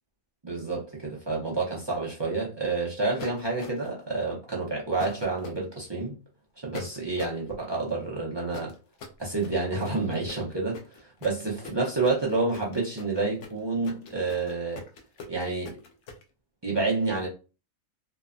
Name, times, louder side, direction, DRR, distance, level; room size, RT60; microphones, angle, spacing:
voice 1, 0.4-6.1 6.6-8.7 9.2-14.8 15.3-15.8 16.6-17.3, right 3 dB, 35° right, 0.4 m, -29 dB
sound 1, 3.2-4.0 5.0-5.6 6.7-7.4 8.5-16.2, left 4 dB, 65° left, 0.8 m, -42 dB
3.0 x 2.1 x 2.4 m
omnidirectional pair, 1.5 m